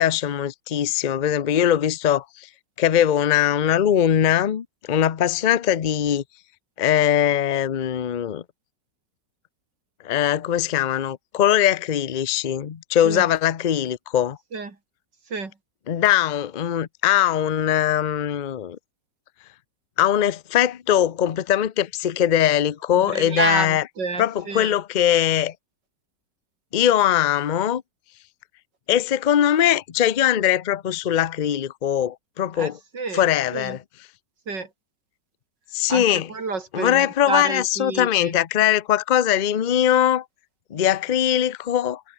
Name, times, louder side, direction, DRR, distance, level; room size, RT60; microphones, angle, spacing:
voice 1, 0.0-2.5 2.8-6.2 6.8-8.4 10.0-14.4 15.9-18.8 20.0-23.8 24.2-25.5 26.7-27.8 28.9-32.8 33.1-33.8 35.7-36.3 36.7-40.2 40.7-42.0, left 10 dB, 80° left, 0.4 m, -21 dB
voice 2, 23.1-24.7 32.6-33.8 34.5-34.7 35.9-38.3, right 4 dB, 75° right, 4.1 m, -29 dB
omnidirectional pair, 1.9 m